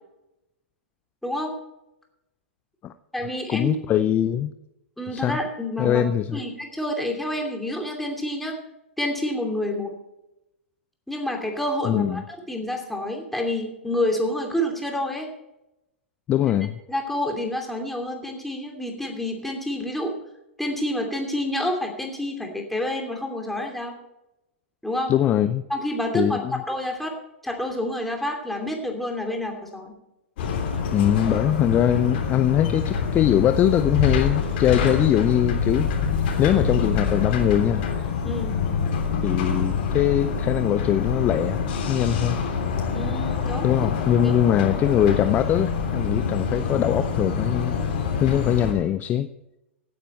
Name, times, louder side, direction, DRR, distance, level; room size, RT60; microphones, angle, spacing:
voice 1, 1.2-1.5 3.1-3.7 5.0-6.0 6.3-8.6 9.0-9.9 11.1-15.3 16.9-20.1 20.6-23.9 24.8-25.1 25.7-27.2 27.4-29.9 38.2-38.6 42.9-43.7 44.2-44.3, left 1 dB, 5° left, 2 dB, 2.7 m, -28 dB
voice 2, 3.5-4.5 5.1-5.4 5.8-6.4 11.8-12.2 16.3-16.8 25.1-25.6 26.1-26.6 30.9-35.9 36.4-37.9 39.2-42.4 43.6-47.8 48.2-49.3, left 10 dB, 25° left, 12 dB, 0.5 m, -22 dB
sound 1, 30.4-48.7, left 6 dB, 55° left, 3.3 m, -26 dB
16.0 x 9.5 x 4.4 m, 0.91 s
figure-of-eight pair, 110°, 7 cm